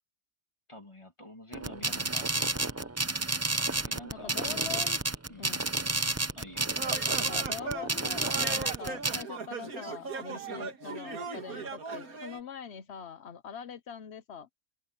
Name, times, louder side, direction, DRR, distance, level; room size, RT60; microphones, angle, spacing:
voice 1, 0.7-2.7 3.8-4.7 5.3-5.5 6.4-6.7 10.5-10.7, left 1 dB, 20° left, 2.6 m, -48 dB
sound 1, 1.5-9.2, right 2 dB, 20° right, 0.4 m, -30 dB
voice 2, 1.8-2.2 4.1-5.0 5.4-5.6 7.3-14.5, left 7 dB, 55° left, 1.0 m, -43 dB
sound 2, 6.7-12.4, right 4 dB, 80° right, 2.3 m, -38 dB
omnidirectional pair, 1.5 m